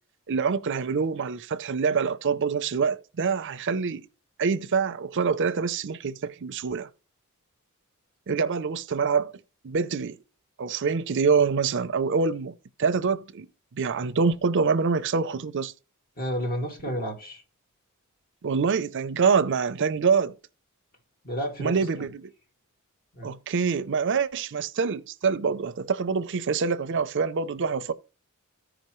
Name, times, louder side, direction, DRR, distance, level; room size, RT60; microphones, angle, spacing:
voice 1, 0.3-4.1 4.4-6.9 8.3-9.3 9.6-10.2 10.6-13.5 13.8-15.7 18.4-20.3 21.6-22.3 23.2-27.9, right 5 dB, 55° right, 0.5 m, -25 dB
voice 2, 16.2-17.4 21.2-22.1 23.1-23.3, equal, 45° left, 2.3 m, -31 dB
14.5 x 5.1 x 3.1 m
head